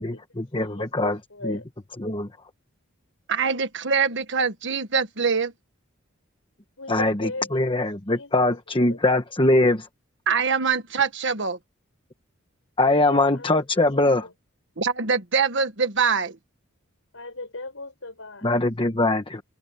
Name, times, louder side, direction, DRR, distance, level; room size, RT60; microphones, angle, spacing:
voice 1, 0.0-1.2 1.4-1.6 2.0-2.3 6.9-9.9 12.8-14.3 18.4-19.4, left 2 dB, 25° left, 1.2 m, -22 dB
voice 2, 0.6-1.7 6.8-9.0 12.8-14.3 17.1-18.5, left 2 dB, 70° left, 6.6 m, -38 dB
voice 3, 3.3-5.5 10.3-11.6 14.8-16.4, right 5 dB, 60° right, 1.6 m, -24 dB
open air
head